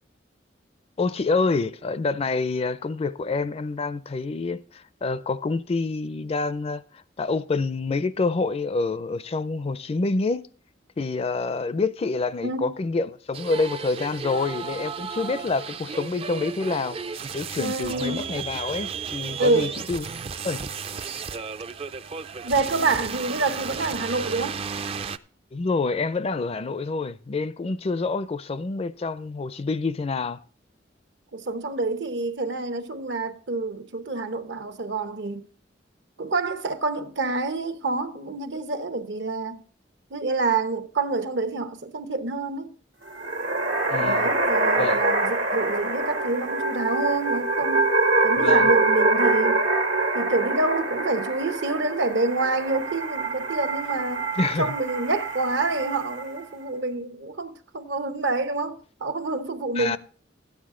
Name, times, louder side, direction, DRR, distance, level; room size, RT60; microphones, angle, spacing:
voice 1, 1.0-6.8 7.2-10.5 11.0-17.0 17.3-20.1 20.4-20.6 25.5-30.4 43.9-44.3 44.8-45.0 48.4-48.7 54.4-54.7 59.8-60.0, left 3 dB, 35° left, 0.4 m, -27 dB
voice 2, 12.4-12.8 17.6-18.3 19.4-19.7 22.4-24.6 31.3-35.5 36.2-39.6 40.1-42.7 44.0-47.9 48.2-49.6 50.1-60.0, right 3 dB, 70° right, 0.9 m, -27 dB
sound 1, 13.3-25.2, right 6 dB, 35° right, 0.4 m, -34 dB
sound 2, 43.1-56.4, right 2 dB, 90° right, 1.7 m, -25 dB
13.0 x 9.6 x 3.7 m
head